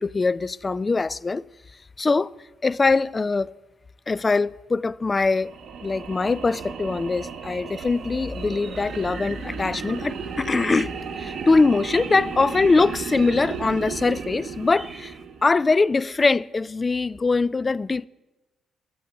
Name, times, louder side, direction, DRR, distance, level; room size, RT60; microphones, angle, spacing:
voice 1, 0.0-1.4 2.0-2.3 2.6-3.5 4.1-5.5 5.8-15.1 15.4-18.1, left 3 dB, 25° left, 0.3 m, -22 dB
sound 1, 5.4-15.7, right 6 dB, 60° right, 1.5 m, -34 dB
sound 2, 7.9-15.3, right 4 dB, 35° right, 1.4 m, -48 dB
12.0 x 7.9 x 8.8 m
cardioid pair, 90°, 0 cm